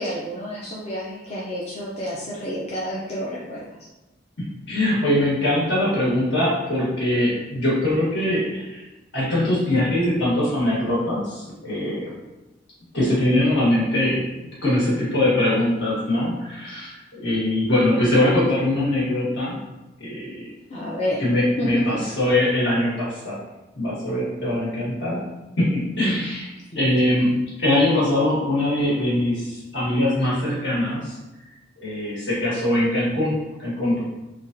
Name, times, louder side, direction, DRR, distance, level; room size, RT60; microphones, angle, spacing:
voice 1, 0.0-3.7 20.7-21.2 21.6-22.0, equal, 35° left, -7 dB, 0.5 m, -29 dB
voice 2, 4.4-8.8 9.1-12.1 12.9-14.2 14.6-16.9 17.2-19.6 20.0-20.5 21.2-23.4 23.7-25.2 25.6-26.5 26.7-31.1 31.8-34.0, left 1 dB, 70° left, -7 dB, 1.4 m, -22 dB
3.3 x 2.3 x 2.6 m, 1.0 s
head